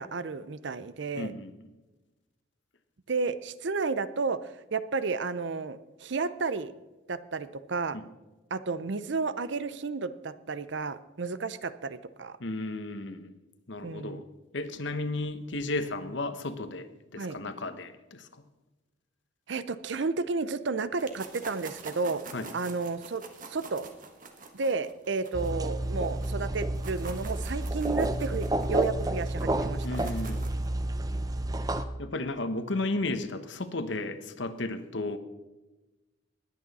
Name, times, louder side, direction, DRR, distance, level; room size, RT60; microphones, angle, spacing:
voice 1, 0.0-1.3 3.1-6.7 7.1-8.0 8.5-12.4 13.8-14.2 17.2-17.4 19.5-22.2 22.5-23.2 23.5-23.9 24.5-30.0, right 4 dB, 60° right, 15 dB, 0.6 m, -32 dB
voice 2, 1.2-1.7 7.9-8.1 12.4-13.3 13.7-14.2 14.5-18.4 22.3-22.5 29.8-30.5 32.0-35.2, left 2 dB, 65° left, 11 dB, 1.0 m, -34 dB
sound 1, 21.0-26.3 26.6-30.7, right 4 dB, 40° right, 1.4 m, -46 dB
sound 2, 25.3-31.8, right 1 dB, 20° right, 0.6 m, -30 dB
20.5 x 8.7 x 4.1 m, 1.1 s
head